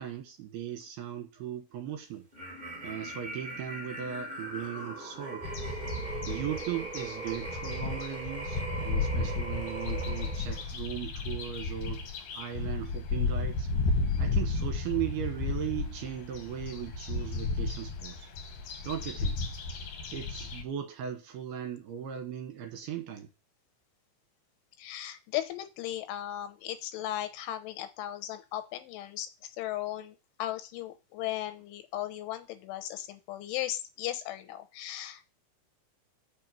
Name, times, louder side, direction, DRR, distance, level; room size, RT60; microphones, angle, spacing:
voice 1, 0.0-2.3 2.8-5.8 6.3-12.0 12.3-13.7 14.2-18.3 18.8-19.4 20.1-23.3, right 10 dB, 70° right, 2.7 m, -38 dB
sound 1, 2.3-10.7, right 2 dB, 25° right, 1.1 m, -40 dB
sound 2, 5.4-20.6, left 3 dB, 65° left, 2.2 m, -33 dB
voice 2, 24.8-35.2, left 13 dB, 85° left, 3.3 m, -37 dB
7.0 x 6.3 x 7.5 m
omnidirectional pair, 5.6 m